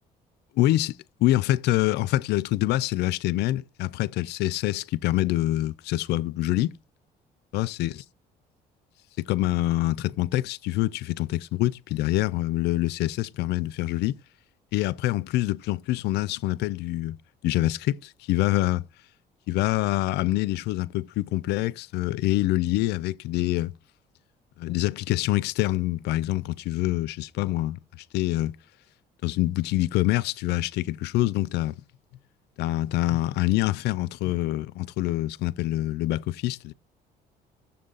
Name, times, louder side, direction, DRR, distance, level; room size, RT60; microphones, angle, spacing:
voice 1, 0.6-6.8 7.5-7.9 9.2-14.2 14.7-17.2 17.4-18.9 19.5-23.7 24.6-28.6 29.2-31.7 32.6-36.7, left 16 dB, 80° left, 0.4 m, -26 dB
7.0 x 3.7 x 5.4 m
cardioid pair, 110°, 17 cm